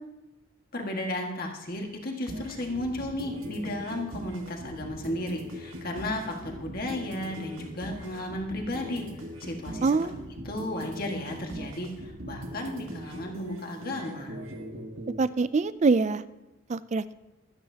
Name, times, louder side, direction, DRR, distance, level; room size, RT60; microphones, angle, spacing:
voice 1, 0.7-9.1 9.4-10.0 10.4-14.4, left 1 dB, 45° left, 1 dB, 1.8 m, -34 dB
sound 1, 2.3-15.2, right 1 dB, 75° right, 1.6 m, -40 dB
voice 2, 9.8-10.1 15.2-16.2 16.7-17.1, right 4 dB, 35° right, 15 dB, 0.4 m, -24 dB
24.0 x 9.4 x 2.8 m, 1.0 s
head